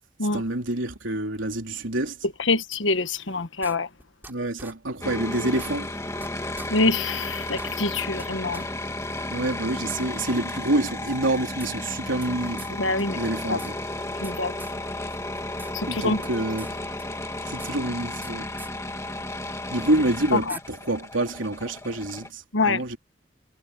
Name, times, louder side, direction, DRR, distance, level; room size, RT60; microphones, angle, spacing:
voice 1, 0.2-2.2 4.3-5.9 9.3-12.7 13.1-13.7 15.9-16.8 17.4-18.5 19.7-23.0, right 1 dB, 90° right, 3.5 m, -27 dB
voice 2, 2.4-3.9 6.7-8.6 12.8-13.2 13.5-13.6 14.2-14.5 15.7-16.2 20.3-20.6 22.5-22.8, left 3 dB, 80° left, 1.3 m, -25 dB
sound 1, 3.6-4.3 4.6-4.7 5.1-5.2 5.5-6.3 6.6-6.7 7.1-7.2 7.5-8.3 8.5-8.7 9.0-9.1 10.0-10.1 11.1-12.3 12.6-12.7 13.0-13.1 13.3-14.3 14.6-14.8 15.1-15.7 16.0-16.7 17.0-18.3 18.6-18.7 19.9-20.0 20.5-20.6, right 2 dB, 10° right, 5.6 m, -43 dB
sound 2, 5.0-22.3, left 1 dB, 15° left, 2.0 m, -33 dB
head